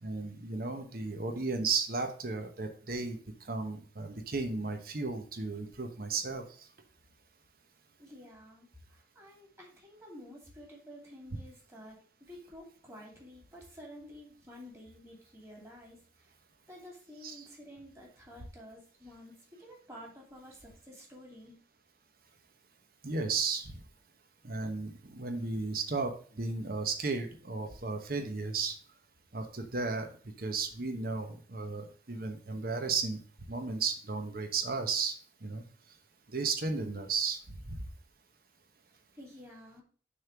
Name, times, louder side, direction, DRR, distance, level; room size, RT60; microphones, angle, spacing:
voice 1, 0.0-3.2 3.5-6.4 17.2-17.4 23.0-23.8 24.4-28.7 29.3-30.1 30.4-33.2 33.5-35.1 35.4-35.6 36.3-37.8, right 4 dB, 50° right, 5 dB, 1.0 m, -34 dB
voice 2, 8.0-16.3 16.7-21.5 39.1-39.8, equal, 15° right, -3 dB, 2.5 m, -51 dB
6.3 x 3.8 x 5.8 m, 0.42 s
head